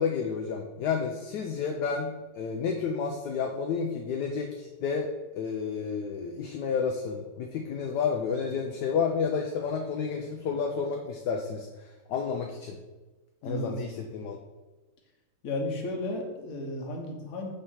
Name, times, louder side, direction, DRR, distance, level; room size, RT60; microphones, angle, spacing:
voice 1, 0.0-11.7 12.1-12.8 13.4-14.4, left 6 dB, 70° left, 2 dB, 1.1 m, -30 dB
voice 2, 13.4-13.7 15.4-17.5, left 1 dB, 55° left, 1 dB, 1.3 m, -33 dB
5.3 x 3.5 x 5.6 m, 1.2 s
omnidirectional pair, 2.0 m